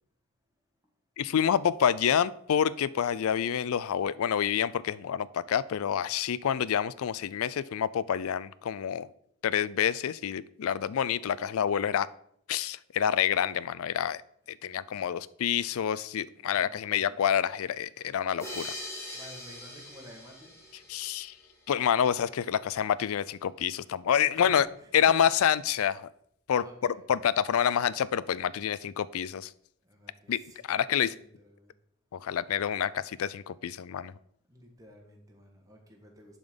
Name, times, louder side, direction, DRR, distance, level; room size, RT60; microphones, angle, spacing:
voice 1, 1.2-9.1 9.4-12.1 12.5-14.2 14.5-18.7 19.1-19.2 20.9-21.3 21.7-24.7 24.9-26.1 26.5-26.6 27.1-29.5 30.3-30.4 30.7-31.1 32.1-34.1, left 8 dB, 70° left, 18 dB, 0.4 m, -27 dB
voice 2, 16.5-17.2 19.1-20.6 24.3-25.2 26.6-27.2 29.8-31.7 34.5-36.4, equal, 15° right, 0 dB, 1.5 m, -53 dB
sound 1, 18.4-21.7, left 1 dB, 10° left, 1.6 m, -42 dB
10.5 x 3.9 x 5.1 m, 0.71 s
head